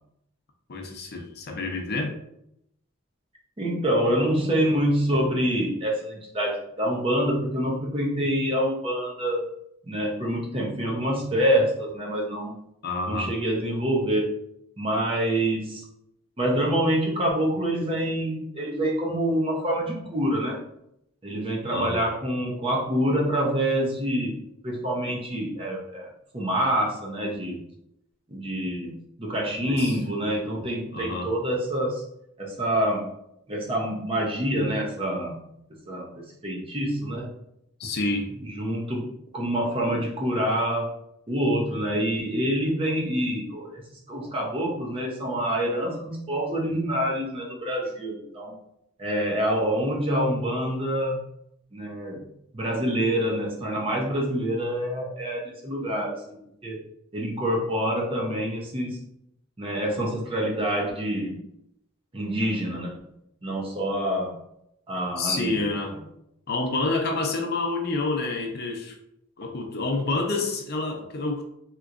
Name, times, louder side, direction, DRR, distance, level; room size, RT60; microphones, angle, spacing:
voice 1, 0.7-2.1 12.8-13.3 21.7-22.0 29.6-30.0 30.6-30.7 30.9-31.3 37.8-38.3 65.2-65.9 66.5-69.0 69.4-71.4, left 3 dB, 55° left, 3 dB, 0.6 m, -28 dB
voice 2, 3.6-9.5 9.8-12.6 13.1-14.4 14.8-15.8 16.4-20.6 21.2-27.6 28.3-32.0 32.4-33.1 33.5-35.4 35.7-37.4 38.4-41.0 41.3-43.8 44.1-48.6 49.0-51.2 51.7-52.2 52.5-56.8 57.1-59.0 59.6-61.4 62.1-63.0 63.4-64.4 64.9-65.7, equal, 30° right, -2 dB, 0.7 m, -26 dB
3.4 x 2.9 x 2.5 m, 0.77 s
head